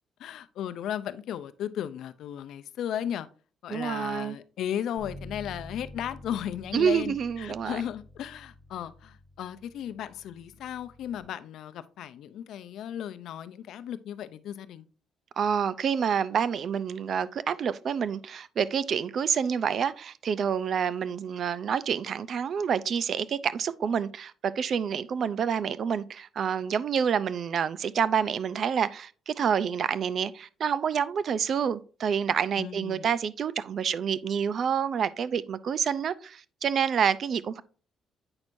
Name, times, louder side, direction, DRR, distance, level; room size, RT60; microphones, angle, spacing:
voice 1, 0.2-3.3 3.6-14.9 32.6-33.1, left 10 dB, 80° left, 0.5 m, -35 dB
voice 2, 3.7-4.4 6.7-7.8 15.4-37.6, right 7 dB, 60° right, 0.5 m, -28 dB
Bass guitar, 5.0-11.2, left 1 dB, 30° right, 2.3 m, -48 dB
8.7 x 6.1 x 2.6 m
cardioid pair, 90°, 0 cm